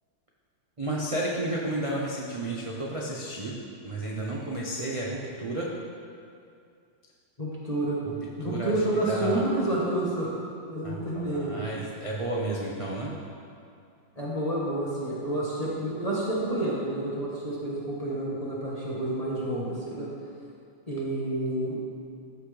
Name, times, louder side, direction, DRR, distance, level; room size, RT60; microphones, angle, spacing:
voice 1, 0.8-3.6 3.8-5.7 8.1-8.2 8.4-9.5 10.8-13.1, right 1 dB, 50° right, -4 dB, 0.4 m, -32 dB
voice 2, 7.4-8.0 8.4-10.3 10.6-11.6 14.2-20.1 20.9-21.8, right 1 dB, 25° left, -7 dB, 1.2 m, -29 dB
14.5 x 5.9 x 3.3 m, 2.4 s
omnidirectional pair, 2.1 m